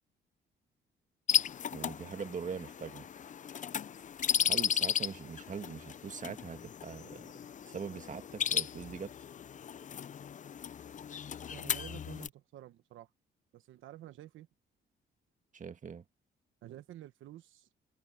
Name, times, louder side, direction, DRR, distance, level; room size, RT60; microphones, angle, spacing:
sound 1, 1.3-12.3, left 8 dB, 40° left, 0.5 m, -35 dB
voice 1, 1.7-3.1 4.5-7.3 7.7-9.1 15.5-16.0, right 6 dB, 40° right, 1.7 m, -42 dB
voice 2, 11.5-13.1 13.5-14.5 16.6-17.7, right 13 dB, 80° right, 1.1 m, -50 dB
cardioid pair, 90°, 20 cm